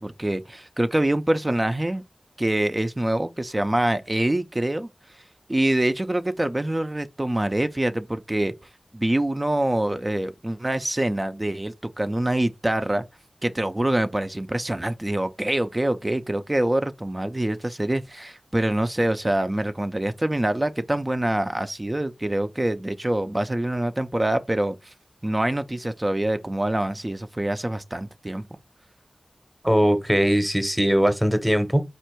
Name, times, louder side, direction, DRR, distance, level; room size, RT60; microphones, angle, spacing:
voice 1, 0.0-2.0 2.4-4.9 5.5-8.5 8.9-13.0 13.4-24.9 25.2-28.5, right 1 dB, 25° right, 0.4 m, -25 dB
voice 2, 29.6-31.8, equal, 5° right, 0.8 m, -20 dB
4.4 x 2.5 x 4.4 m
wide cardioid pair, 65°, 0 cm